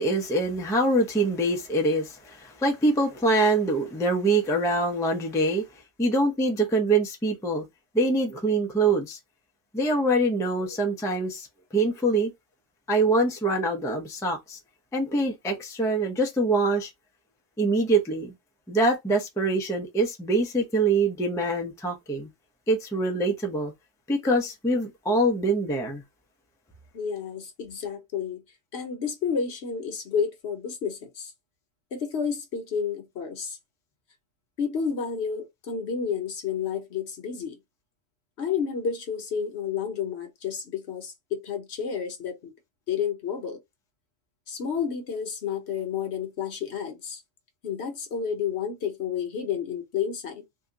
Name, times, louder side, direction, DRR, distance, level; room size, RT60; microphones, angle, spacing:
voice 1, 0.0-5.6 6.0-7.6 7.9-9.2 9.7-11.5 11.7-12.3 12.9-14.6 14.9-16.9 17.6-18.3 18.7-22.3 22.7-23.7 24.1-26.0, right 2 dB, 5° left, 0.4 m, -24 dB
voice 2, 26.9-28.4 28.7-31.3 31.9-33.6 34.6-37.6 38.4-42.5 42.9-43.6 44.5-47.2 47.6-50.4, left 6 dB, 60° left, 1.0 m, -30 dB
2.8 x 2.3 x 3.7 m
omnidirectional pair, 1.3 m